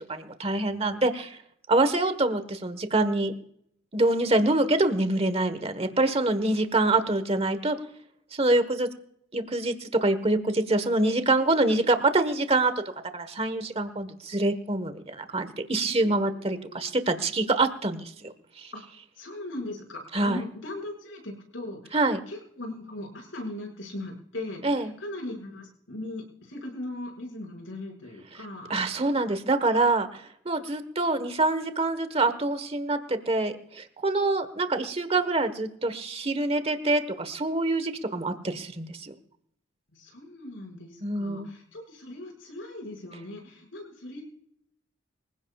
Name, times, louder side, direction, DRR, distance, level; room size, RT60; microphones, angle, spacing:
voice 1, 0.1-1.4 1.7-3.3 3.9-7.8 8.3-8.9 9.3-12.7 13.1-18.7 20.1-20.4 21.9-22.2 24.6-24.9 28.7-39.1 41.0-41.5, right 2 dB, 30° right, 11 dB, 1.3 m, -25 dB
voice 2, 15.8-16.9 18.7-18.8 19.1-22.0 22.3-28.7 39.9-44.3, left 1 dB, 80° left, 1 dB, 5.8 m, -39 dB
25.5 x 16.0 x 2.4 m, 0.71 s
head